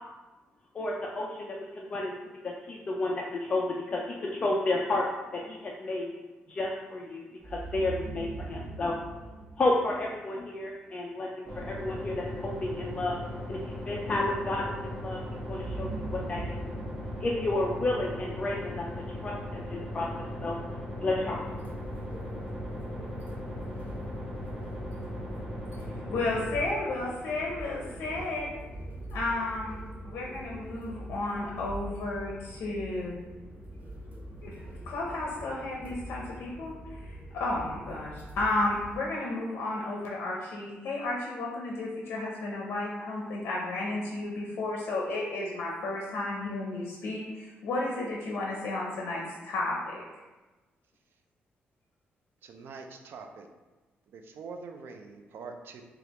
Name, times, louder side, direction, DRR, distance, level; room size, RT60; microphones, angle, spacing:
voice 1, 0.7-2.1 2.4-5.1 5.3-6.1 6.5-9.0 9.6-13.2 13.5-15.2 15.5-16.6 17.2-20.6 21.0-21.6, left 2 dB, 30° left, -2 dB, 0.4 m, -31 dB
sound 1, 7.4-10.4 15.4-18.6, right 3 dB, 25° right, 0.7 m, -41 dB
sound 2, 11.4-26.5, left 1 dB, ahead, 1.2 m, -38 dB
sound 3, 21.3-39.0, equal, 45° right, 1.0 m, -43 dB
voice 2, 26.1-28.6 29.1-33.2 34.4-34.5 34.9-50.0, left 2 dB, 80° left, -2 dB, 0.6 m, -33 dB
voice 3, 52.4-53.5 54.1-55.8, right 4 dB, 70° right, 5 dB, 0.4 m, -44 dB
5.0 x 2.4 x 2.9 m, 1.2 s
cardioid pair, 130°, 4 cm